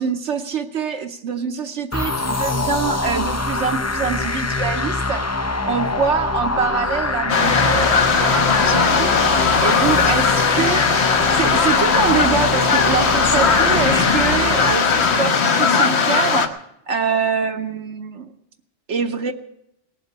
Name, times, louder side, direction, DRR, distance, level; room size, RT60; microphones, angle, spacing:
voice 1, 0.0-5.2 5.7-11.0 11.3-16.5 16.9-18.3 18.9-19.3, right 6 dB, 70° right, 6 dB, 1.2 m, -25 dB
sound 1, 1.9-15.4, left 2 dB, 20° left, 0.4 m, -24 dB
sound 2, 7.3-16.5, left 5 dB, 60° left, 1.3 m, -18 dB
18.0 x 7.3 x 9.5 m, 0.80 s
omnidirectional pair, 1.3 m